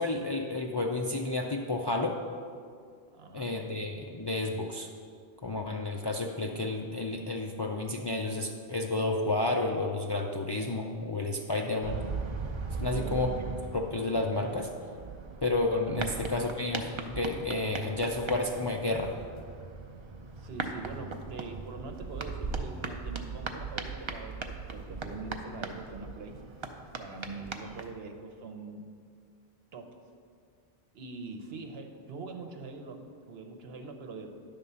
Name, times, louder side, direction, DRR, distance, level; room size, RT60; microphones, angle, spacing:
voice 1, 0.0-2.2 3.3-4.9 5.4-12.0 12.8-13.3 13.7-14.7 15.4-19.1, left 2 dB, 35° left, 1 dB, 0.4 m, -31 dB
voice 2, 3.1-3.6 12.7-13.2 15.9-16.0 20.4-26.4 27.0-28.8 29.7-30.0 30.9-34.4, right 3 dB, 80° right, 5 dB, 1.0 m, -43 dB
sound 1, 11.8-27.9, right 4 dB, 35° right, 0.5 m, -39 dB
10.5 x 3.7 x 6.8 m, 2.2 s
omnidirectional pair, 1.0 m